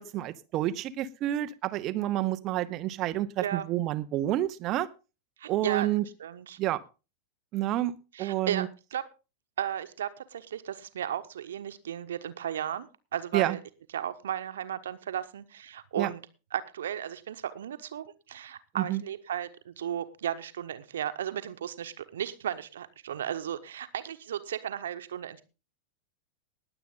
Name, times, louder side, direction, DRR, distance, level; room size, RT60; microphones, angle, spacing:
voice 1, 0.0-4.9 5.5-6.0 6.6-6.8 7.5-8.7 13.3-13.6 16.0-16.1 18.7-19.0, right 14 dB, 35° right, 14 dB, 0.8 m, -29 dB
voice 2, 5.4-5.9 6.2-6.6 8.1-9.0 9.6-13.6 13.9-16.2 16.5-25.4, right 10 dB, 65° right, 10 dB, 1.2 m, -35 dB
20.0 x 8.1 x 3.7 m, 0.31 s
figure-of-eight pair, 90°, 0 cm